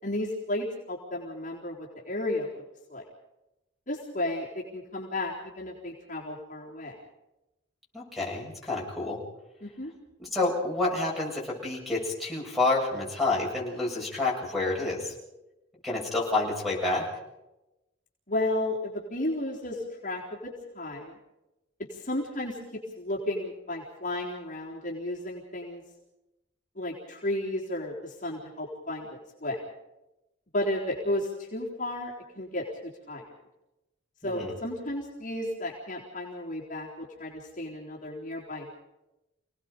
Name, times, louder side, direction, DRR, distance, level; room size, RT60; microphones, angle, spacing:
voice 1, 0.0-2.6 2.9-3.0 3.9-7.0 9.6-9.9 18.3-21.1 21.9-25.8 26.8-29.6 30.5-32.7 33.1-33.3 34.2-38.8, left 1 dB, 40° left, -3 dB, 3.9 m, -33 dB
voice 2, 7.9-9.2 10.2-15.1 15.8-17.1 34.2-34.5, left 2 dB, ahead, -2 dB, 7.4 m, -29 dB
28.5 x 18.5 x 5.3 m, 0.96 s
head